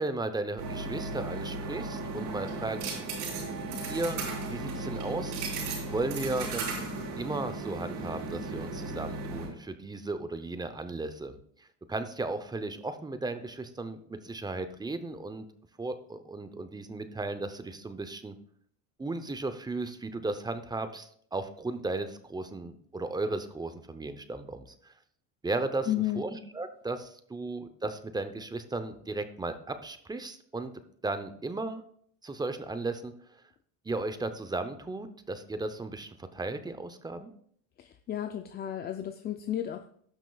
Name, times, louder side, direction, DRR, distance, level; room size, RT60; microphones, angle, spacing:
voice 1, 0.0-2.9 3.8-5.6 5.9-6.7 7.2-15.5 15.8-18.3 19.0-24.9 25.4-25.9 26.2-30.7 31.0-31.8 32.2-33.1 33.8-37.3, right 2 dB, 10° right, 10 dB, 0.7 m, -35 dB
sound 1, 0.6-9.5, right 3 dB, 75° right, 4.4 m, -35 dB
voice 2, 25.9-26.2 37.8-39.9, left 12 dB, 25° left, 7 dB, 0.4 m, -33 dB
17.5 x 6.0 x 2.3 m, 0.63 s
supercardioid pair, 105°, 42 cm